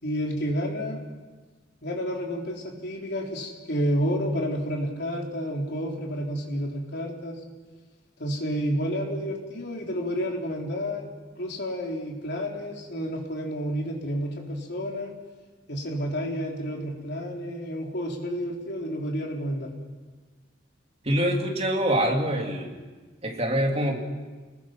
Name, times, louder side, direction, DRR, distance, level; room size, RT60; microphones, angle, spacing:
voice 1, 0.0-1.0 1.8-7.4 8.2-11.1 11.4-15.1 15.7-19.7, equal, 60° left, 0 dB, 4.2 m, -30 dB
voice 2, 21.0-22.7 23.2-24.0, right 1 dB, 30° right, 1 dB, 3.0 m, -25 dB
29.5 x 20.5 x 6.1 m, 1.4 s
head